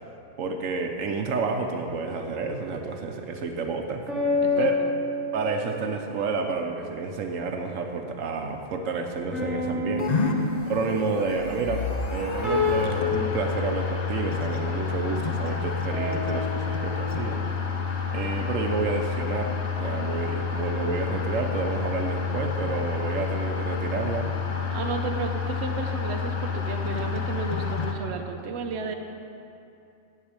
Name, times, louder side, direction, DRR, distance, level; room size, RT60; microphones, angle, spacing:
voice 1, 0.4-4.1 4.6-4.7 5.3-10.2 10.7-17.4 18.1-24.3, right 4 dB, 80° right, 4 dB, 1.1 m, -30 dB
sound 1, 1.9-3.1 4.1-6.2 9.3-13.8 15.9-17.8, left 4 dB, ahead, 2.7 m, -30 dB
voice 2, 4.4-5.0 24.7-28.9, right 4 dB, 60° right, 4 dB, 1.1 m, -33 dB
sound 2, 10.0-28.0, left 5 dB, 40° left, 0.8 m, -29 dB
8.3 x 7.7 x 8.8 m, 2.7 s
omnidirectional pair, 1.3 m